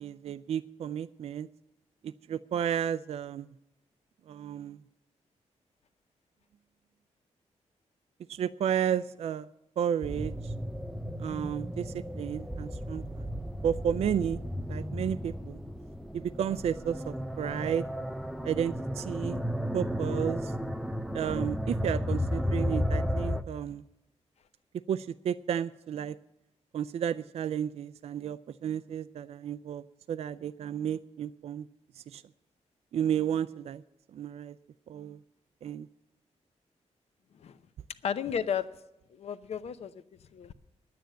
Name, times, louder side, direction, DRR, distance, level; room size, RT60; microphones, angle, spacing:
voice 1, 0.0-1.5 2.0-3.5 4.3-4.8 8.3-9.5 9.8-10.5 11.2-13.3 13.6-14.4 14.7-15.6 16.1-17.8 18.4-19.4 19.7-20.5 21.1-23.8 24.9-26.1 26.7-31.6 32.1-32.2 32.9-33.8 34.1-34.5 34.9-35.2 35.6-35.9, right 9 dB, 60° right, 13 dB, 0.4 m, -32 dB
sound 1, 10.0-23.4, equal, ahead, 0.5 m, -34 dB
voice 2, 38.0-38.7 39.1-40.0 40.3-40.5, left 8 dB, 60° left, 13 dB, 0.7 m, -33 dB
10.5 x 9.3 x 7.5 m, 0.90 s
wide cardioid pair, 135°, 12 cm